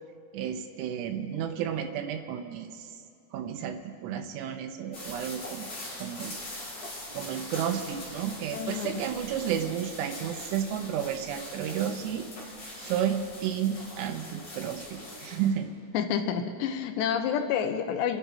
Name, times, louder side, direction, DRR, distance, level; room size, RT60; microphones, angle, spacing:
voice 1, 0.3-2.9 3.3-5.7 6.0-6.4 7.1-12.3 12.8-15.7, right 9 dB, 85° right, 5 dB, 3.1 m, -32 dB
sound 1, 4.9-15.5, left 1 dB, 40° left, 4.8 m, -42 dB
voice 2, 8.5-9.1 15.9-18.2, left 8 dB, 85° left, 7 dB, 3.1 m, -29 dB
27.5 x 10.5 x 4.4 m, 2.4 s
omnidirectional pair, 4.8 m